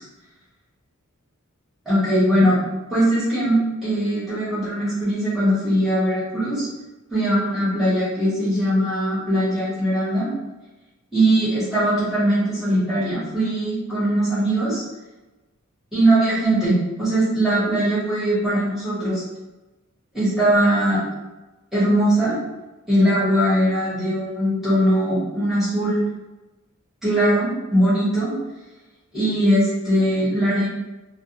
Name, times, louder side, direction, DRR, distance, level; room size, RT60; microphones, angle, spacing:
voice 1, 1.8-2.6 2.9-6.7 7.1-10.3 11.1-14.8 15.9-19.2 20.1-21.0 21.7-22.4 22.9-26.1 27.0-28.3 29.1-30.7, right 1 dB, ahead, -12 dB, 1.1 m, -20 dB
2.4 x 2.2 x 2.7 m, 1.1 s
head